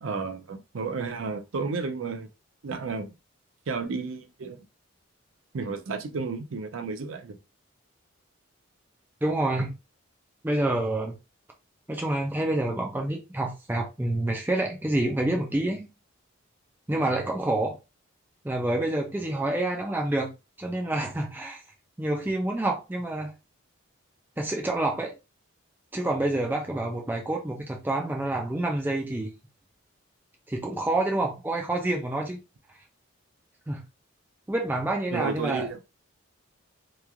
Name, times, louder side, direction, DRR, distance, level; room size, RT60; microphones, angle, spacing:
voice 1, 0.0-2.3 2.6-3.1 3.7-4.6 5.5-7.4 35.1-35.8, right 4 dB, 70° right, 0.5 m, -32 dB
voice 2, 9.2-9.7 10.4-11.2 11.9-15.9 16.9-17.7 18.4-20.3 20.6-21.6 22.0-23.3 24.4-25.1 25.9-29.3 30.5-32.4 33.7-33.8 34.5-35.7, right 2 dB, 10° right, 0.4 m, -27 dB
3.0 x 2.4 x 2.3 m
head